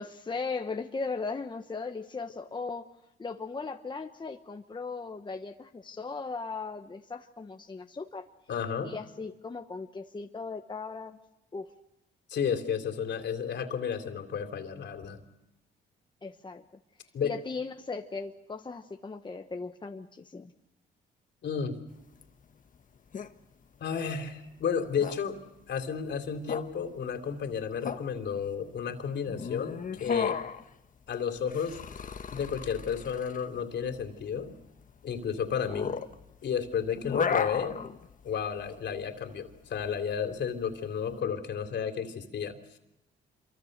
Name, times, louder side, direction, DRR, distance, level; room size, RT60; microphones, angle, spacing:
voice 1, 0.0-2.9 3.2-8.3 8.8-11.2 11.5-11.7 16.2-16.6 17.2-20.5, left 4 dB, 25° left, 5 dB, 1.2 m, -37 dB
voice 2, 8.5-8.9 12.3-15.2 17.1-17.3 21.4-21.8 23.8-25.4 25.7-30.4 31.1-31.8 32.3-34.5 35.0-36.0 36.4-37.8 38.2-42.8, left 7 dB, 60° left, 6 dB, 3.3 m, -32 dB
sound 1, 21.9-41.1, left 6 dB, 40° left, 1.4 m, -37 dB
26.5 x 24.5 x 6.7 m, 0.88 s
cardioid pair, 90°, 20 cm